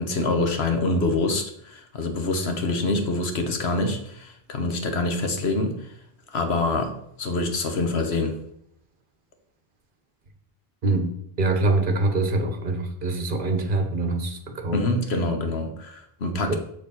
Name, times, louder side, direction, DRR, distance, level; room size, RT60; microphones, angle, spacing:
voice 1, 0.0-5.7 6.3-6.9 7.2-8.3 14.7-16.6, left 2 dB, 85° left, 5 dB, 1.4 m, -25 dB
voice 2, 10.8-14.8 16.3-16.6, right 2 dB, 55° right, 6 dB, 1.2 m, -24 dB
6.7 x 6.4 x 4.2 m, 0.72 s
omnidirectional pair, 1.0 m